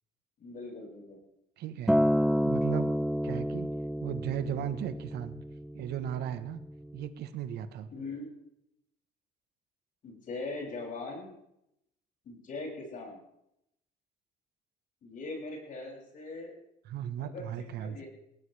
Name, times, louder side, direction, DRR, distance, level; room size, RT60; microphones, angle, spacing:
voice 1, 0.4-1.2 7.9-8.3 10.0-11.3 12.2-13.2 15.0-16.5 17.2-18.1, left 3 dB, 55° left, -1 dB, 7.0 m, -41 dB
voice 2, 1.6-2.0 2.4-3.7 4.0-5.3 5.7-6.6 6.9-7.9 16.9-18.0, right 10 dB, 75° right, 11 dB, 1.2 m, -36 dB
Acoustic guitar, 1.9-6.2 7.0-7.1, equal, ahead, 0.6 m, -29 dB
19.5 x 18.5 x 3.4 m, 0.81 s
cardioid pair, 110°, 17 cm